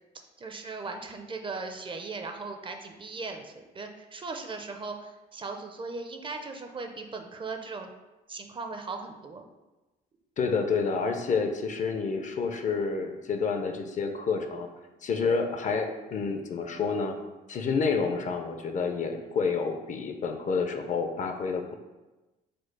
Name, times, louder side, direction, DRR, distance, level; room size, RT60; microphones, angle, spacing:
voice 1, 0.4-7.9 8.3-9.4, right 3 dB, 25° right, 5 dB, 0.5 m, -38 dB
voice 2, 10.4-14.7 15.0-17.2 17.5-21.7, left 5 dB, 45° left, 5 dB, 0.5 m, -29 dB
4.3 x 2.3 x 4.5 m, 1.1 s
cardioid pair, 90°, 18 cm